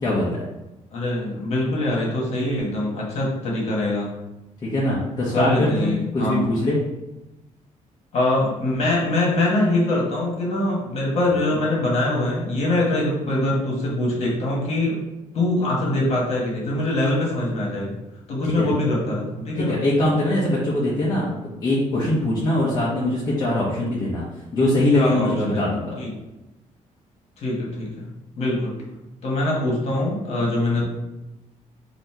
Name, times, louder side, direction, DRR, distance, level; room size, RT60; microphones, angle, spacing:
voice 1, 0.0-0.4 4.6-6.8 18.6-18.7 19.6-24.2 24.5-26.0, left 1 dB, 30° left, -6 dB, 0.8 m, -22 dB
voice 2, 0.9-4.1 5.3-6.5 8.1-15.0 15.3-18.0 18.3-19.7 24.9-26.1 27.4-28.1 28.4-28.7 29.2-30.8, left 1 dB, 50° left, -3 dB, 1.4 m, -23 dB
4.1 x 2.7 x 4.4 m, 0.98 s
cardioid pair, 180°, 13 cm